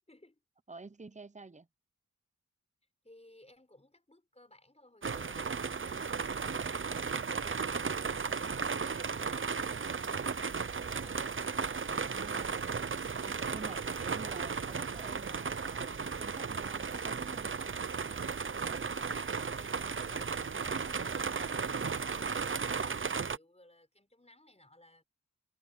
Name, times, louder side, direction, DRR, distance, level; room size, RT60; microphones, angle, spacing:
voice 1, 0.1-0.4 3.0-11.2 18.6-25.0, left 1 dB, 20° left, 5.1 m, -60 dB
voice 2, 0.7-1.7 11.9-12.6 13.2-17.6, right 3 dB, 25° right, 1.0 m, -49 dB
sound 1, 5.0-23.4, right 5 dB, 40° right, 0.6 m, -35 dB
wide cardioid pair, 80°, 30 cm